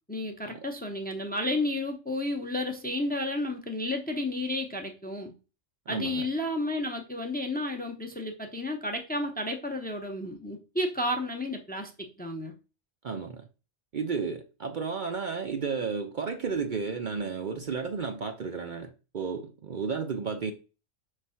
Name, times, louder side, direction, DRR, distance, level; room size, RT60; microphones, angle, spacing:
voice 1, 0.1-5.3 5.9-12.5, left 1 dB, 10° left, 0.6 m, -32 dB
voice 2, 5.9-6.3 13.0-13.4 13.9-20.5, right 5 dB, 50° right, 0.7 m, -33 dB
5.2 x 3.3 x 5.6 m
omnidirectional pair, 1.2 m